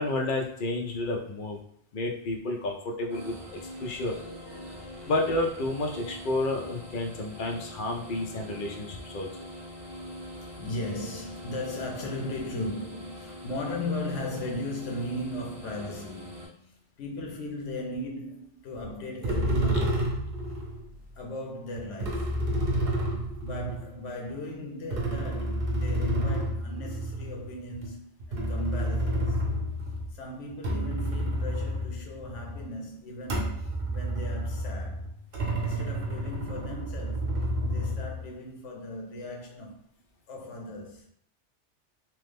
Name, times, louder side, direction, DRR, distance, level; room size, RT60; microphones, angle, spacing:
voice 1, 0.0-1.6 1.9-3.3 3.8-4.1 5.1-9.3, left 2 dB, 60° left, 0.6 m, -30 dB
sound 1, 3.1-16.5, equal, 25° right, 0.6 m, -43 dB
voice 2, 4.2-5.3 7.9-8.0 10.6-20.0 21.2-22.4 23.4-29.4 30.1-35.1 35.6-37.4 37.6-39.9 40.3-41.1, left 1 dB, 90° left, 1.0 m, -37 dB
sound 2, 18.8-18.9 19.2-20.9 21.7-24.3 24.9-30.1 30.5-32.7 33.2-38.3, right 1 dB, 55° right, 0.9 m, -30 dB
3.0 x 2.0 x 3.3 m
omnidirectional pair, 1.2 m